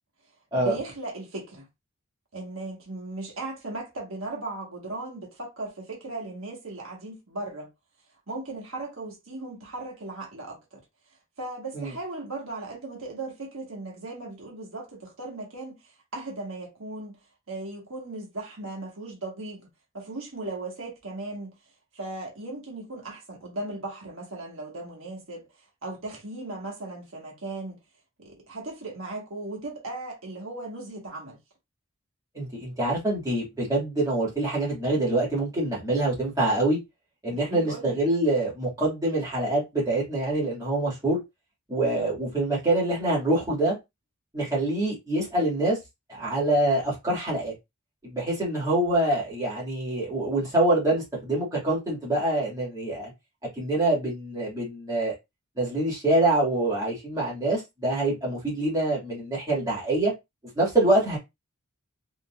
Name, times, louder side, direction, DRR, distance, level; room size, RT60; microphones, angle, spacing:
voice 1, 0.6-1.7 2.3-7.7 8.3-10.8 11.4-17.2 17.5-19.7 19.9-21.6 21.9-25.5 25.8-27.8 28.2-31.4 37.3-38.0 61.0-61.2, right 2 dB, 70° right, 1.3 m, -37 dB
voice 2, 32.3-36.8 37.2-41.2 41.7-43.8 44.3-45.8 46.1-47.5 48.0-53.1 53.6-55.1 55.6-60.1 60.6-61.2, right 2 dB, 15° right, 1.8 m, -25 dB
3.8 x 2.6 x 2.3 m
head